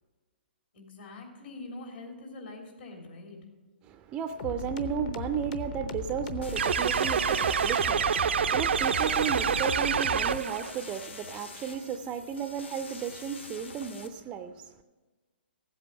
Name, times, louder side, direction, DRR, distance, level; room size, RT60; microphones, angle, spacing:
voice 1, 0.7-3.4, left 2 dB, 65° left, 3.4 m, -44 dB
voice 2, 3.8-14.8, right 8 dB, 15° right, 0.4 m, -34 dB
sound 1, 4.4-10.4, left 5 dB, 40° left, 0.8 m, -38 dB
sound 2, 6.4-14.1, left 4 dB, 90° left, 1.3 m, -46 dB
sound 3, 6.6-10.7, right 7 dB, 80° right, 0.4 m, -27 dB
15.0 x 8.2 x 5.5 m
hypercardioid pair, 155°, 6 cm